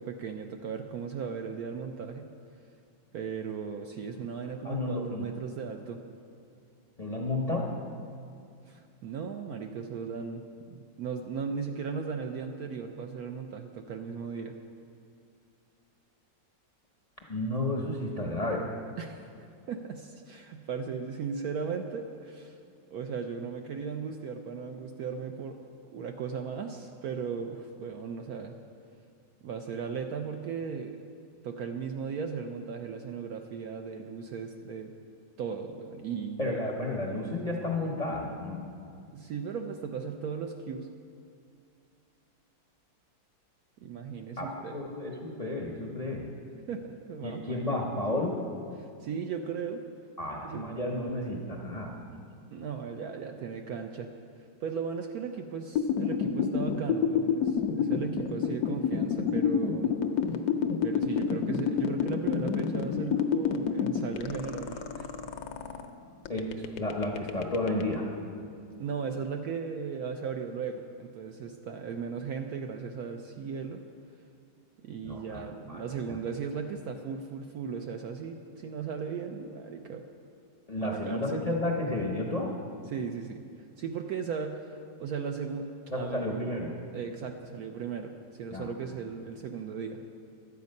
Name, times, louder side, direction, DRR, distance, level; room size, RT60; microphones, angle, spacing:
voice 1, 0.0-2.3 3.1-6.0 8.7-14.5 19.0-22.6 22.9-28.6 29.4-31.0 31.4-34.9 35.4-36.7 39.1-40.9 43.8-44.8 46.7-47.6 48.8-49.8 50.4-50.7 52.5-54.1 54.6-59.9 60.8-65.1 68.8-73.8 74.8-80.0 80.8-81.4 82.9-83.5 83.8-86.2 86.9-90.0, right 6 dB, 70° right, 4 dB, 0.9 m, -37 dB
voice 2, 4.6-5.3 7.0-7.7 17.3-18.6 36.4-38.6 44.4-46.3 47.2-48.4 50.2-52.2 66.3-68.2 75.0-75.8 80.7-82.5 85.9-86.7 88.5-88.7, left 1 dB, 35° left, -1 dB, 0.6 m, -32 dB
sound 1, 55.8-65.9 66.3-67.9, left 7 dB, 70° left, 1.0 m, -28 dB
12.0 x 8.2 x 5.3 m, 2.4 s
omnidirectional pair, 2.0 m